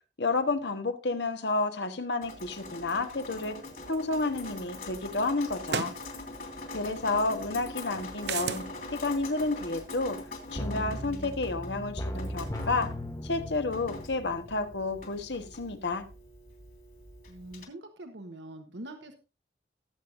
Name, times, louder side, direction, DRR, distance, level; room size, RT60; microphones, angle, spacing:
voice 1, 0.2-3.6 3.9-6.0 6.7-8.6 9.0-10.2 10.5-12.9 13.2-16.0, left 3 dB, 80° left, 1.4 m, -30 dB
Drip, 2.2-17.6, left 2 dB, 50° left, 3.1 m, -43 dB
sound 1, 4.3-4.4 5.7-6.0 8.2-8.7, right 7 dB, 70° right, 0.5 m, -32 dB
sound 2, 10.6-15.2 15.6-15.7, equal, 20° left, 1.0 m, -37 dB
voice 2, 17.3-19.2, right 1 dB, 90° right, 1.2 m, -44 dB
18.0 x 8.1 x 2.6 m
head